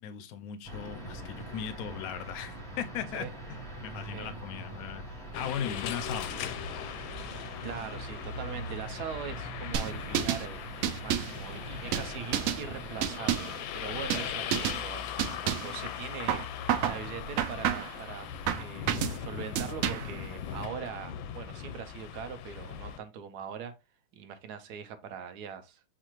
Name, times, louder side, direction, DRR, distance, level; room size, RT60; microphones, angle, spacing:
voice 1, 0.0-3.3 3.8-6.6, left 8 dB, 75° left, 0.9 m, -38 dB
sound 1, 0.6-13.2, right 1 dB, 5° left, 0.7 m, -43 dB
sound 2, 5.3-23.0, left 9 dB, 90° left, 1.4 m, -39 dB
voice 2, 7.6-10.6 11.0-15.1 15.4-16.4 16.9-23.7 24.1-25.8, right 7 dB, 65° right, 1.1 m, -41 dB
sound 3, 9.7-10.5 10.8-11.4 11.9-12.6 13.0-13.6 14.1-14.3 14.5-14.8 15.2-15.8 16.3-17.0 17.4-18.0 18.5-19.2 19.6-20.2, right 10 dB, 85° right, 0.7 m, -29 dB
7.3 x 2.4 x 3.0 m
omnidirectional pair, 2.0 m